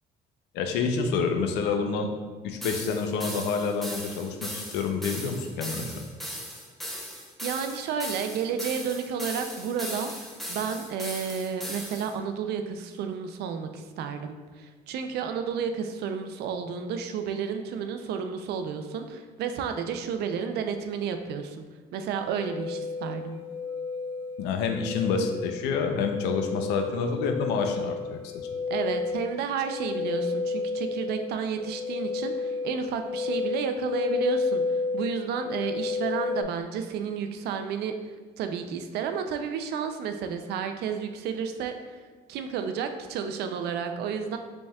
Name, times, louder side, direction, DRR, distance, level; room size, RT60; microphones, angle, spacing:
voice 1, 0.5-2.1 2.4-6.0 24.4-28.5, left 5 dB, 90° left, 5 dB, 0.5 m, -28 dB
sound 1, 2.6-12.1, equal, ahead, 0.7 m, -38 dB
voice 2, 7.4-21.6 21.9-23.4 28.7-37.9 38.4-42.0 42.3-44.4, right 6 dB, 75° right, 7 dB, 0.4 m, -31 dB
sound 2, 22.2-36.4, left 4 dB, 35° right, 1.1 m, -32 dB
5.1 x 3.5 x 2.3 m, 1.4 s
cardioid pair, 110°, 17 cm